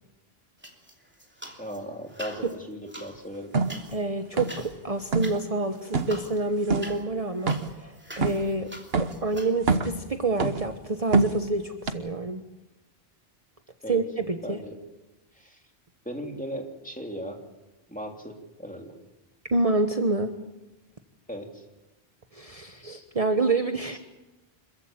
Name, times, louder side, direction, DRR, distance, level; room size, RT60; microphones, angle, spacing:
sound 1, 0.6-1.8 2.1-9.5, equal, 10° right, 3.0 m, -44 dB
voice 1, 1.6-3.5 13.8-14.0 14.4-14.8 15.3-15.6 16.0-17.4 17.9-18.9 21.3-21.6, equal, 10° left, 2 dB, 3.2 m, -37 dB
sound 2, 3.5-3.8 4.4-4.7 5.0-5.4 5.9-6.2 6.7-6.9 7.5-7.8 8.2-8.5 8.9-9.2 9.6-10.0 10.4-10.7 11.1-11.5 11.9-12.0, right 3 dB, 75° right, 1.5 m, -25 dB
voice 2, 3.9-12.4 13.9-14.6 19.5-20.3 22.3-24.0, right 2 dB, 35° right, 6 dB, 1.2 m, -28 dB
26.5 x 15.0 x 8.9 m, 1.1 s
omnidirectional pair, 1.0 m